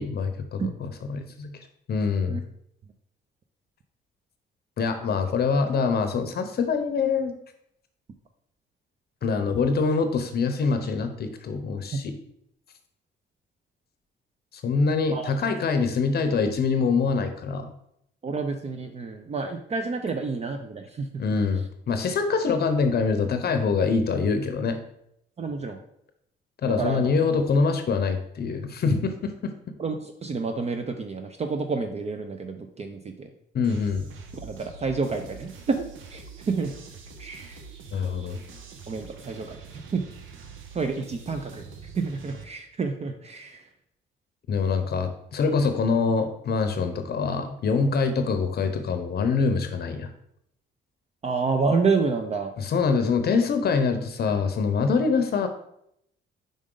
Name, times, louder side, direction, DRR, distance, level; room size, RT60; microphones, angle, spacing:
voice 1, 0.0-1.5 1.9-2.4 4.8-7.3 9.2-12.1 14.5-17.7 21.2-24.8 26.6-29.5 33.5-34.1 37.9-38.4 44.5-50.1 52.6-55.5, left 4 dB, 55° left, 7 dB, 0.7 m, -24 dB
voice 2, 18.2-21.1 25.4-25.8 26.7-27.1 29.8-33.3 34.4-36.7 37.2-37.6 38.9-39.6 39.9-40.0 40.7-41.6 42.0-43.7 51.2-52.5, right 4 dB, 35° right, 6 dB, 0.5 m, -29 dB
sound 1, 33.6-42.4, right 5 dB, 90° right, 0.8 m, -44 dB
5.2 x 4.9 x 3.8 m, 0.75 s
cardioid pair, 90°, 20 cm